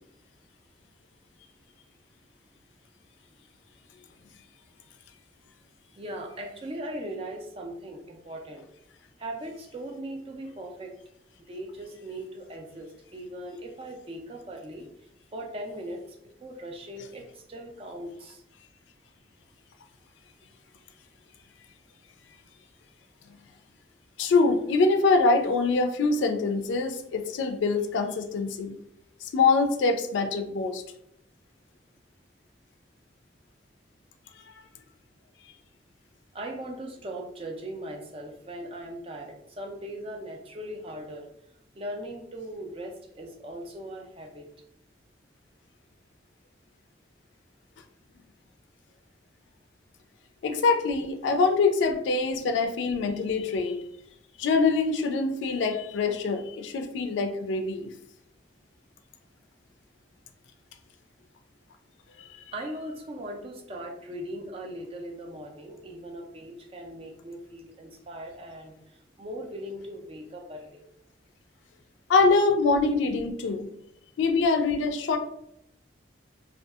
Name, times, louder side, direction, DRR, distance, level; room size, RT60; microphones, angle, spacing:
voice 1, 6.0-8.6 9.2-10.9 11.5-14.8 15.3-16.0 16.4-18.4 36.3-41.2 41.8-44.4 62.5-68.7 69.2-70.8, right 1 dB, 30° right, 2 dB, 0.4 m, -39 dB
voice 2, 24.2-28.8 29.2-30.8 50.4-53.8 54.4-57.9 62.3-62.4 72.1-73.7 74.2-75.2, left 4 dB, 85° left, 7 dB, 0.3 m, -24 dB
2.6 x 2.3 x 2.3 m, 0.76 s
head